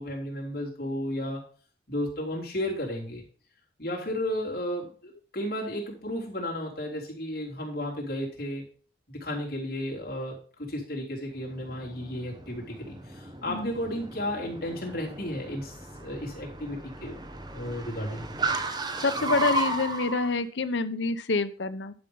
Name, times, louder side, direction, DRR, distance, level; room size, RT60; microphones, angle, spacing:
voice 1, 0.0-1.4 1.9-3.2 3.8-8.6 9.1-15.7 16.0-17.3 17.5-18.2, left 1 dB, 55° left, -3 dB, 3.5 m, -33 dB
Car, 11.4-20.3, right 2 dB, 25° right, 0.9 m, -34 dB
voice 2, 19.0-21.9, left 3 dB, 90° left, 12 dB, 0.8 m, -27 dB
11.5 x 5.3 x 5.4 m, 0.42 s
head